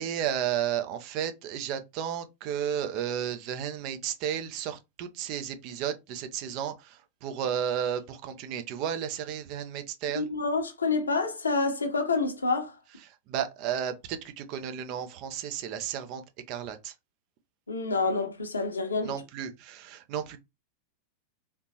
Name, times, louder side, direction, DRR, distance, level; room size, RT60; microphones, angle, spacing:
voice 1, 0.0-10.3 13.0-16.2 16.5-16.9 19.0-20.4, right 9 dB, 40° right, 0.6 m, -33 dB
voice 2, 10.1-12.7 17.7-19.1, left 3 dB, 75° left, 0.8 m, -28 dB
3.3 x 2.9 x 2.8 m
figure-of-eight pair, 90°, 0 cm